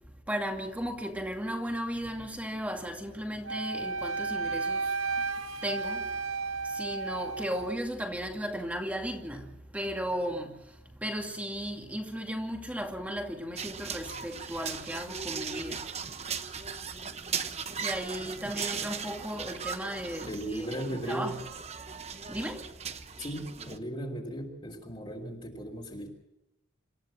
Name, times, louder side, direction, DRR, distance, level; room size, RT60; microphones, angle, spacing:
voice 1, 0.3-4.9 5.6-6.0 6.6-10.5 11.0-15.8 17.8-21.4 22.3-22.6, equal, 5° right, 2.4 m, -35 dB
Wind instrument woodwind instrument, 3.4-7.7, right 4 dB, 80° right, 0.9 m, -33 dB
sound 1, 13.6-23.8, right 6 dB, 30° right, 1.0 m, -38 dB
voice 2, 20.3-21.3 23.2-26.1, right 1 dB, 25° left, 3.2 m, -36 dB
27.5 x 14.0 x 7.5 m
head